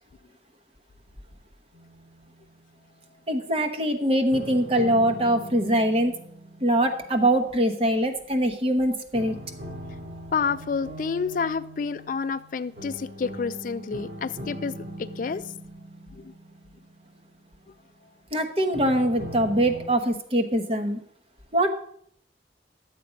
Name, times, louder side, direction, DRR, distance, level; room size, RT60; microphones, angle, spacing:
sound 1, 1.7-2.9 4.3-8.3 9.1-17.9 18.7-19.9, equal, 65° right, 2.9 m, -41 dB
voice 1, 3.3-6.1 6.6-9.4 18.3-21.0 21.5-21.7, right 1 dB, 35° right, 6 dB, 1.1 m, -23 dB
voice 2, 10.3-15.4 16.1-16.3, left 5 dB, 50° left, 13 dB, 0.3 m, -29 dB
11.0 x 7.6 x 5.1 m, 0.65 s
head